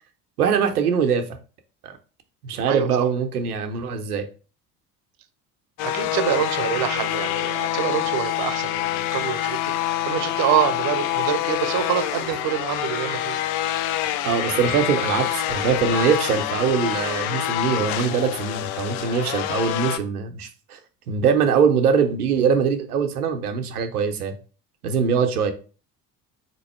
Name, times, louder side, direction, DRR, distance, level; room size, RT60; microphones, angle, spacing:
voice 1, 0.4-1.2 1.8-1.9 2.4-4.3 14.2-20.8 21.1-24.3 24.8-25.5, right 6 dB, 85° right, 0.7 m, -22 dB
sound 1, 5.8-20.0, left 13 dB, 60° left, 0.6 m, -26 dB
voice 2, 5.8-13.4, right 11 dB, 50° right, 0.7 m, -26 dB
4.0 x 2.9 x 4.3 m
hypercardioid pair, 60°, 44 cm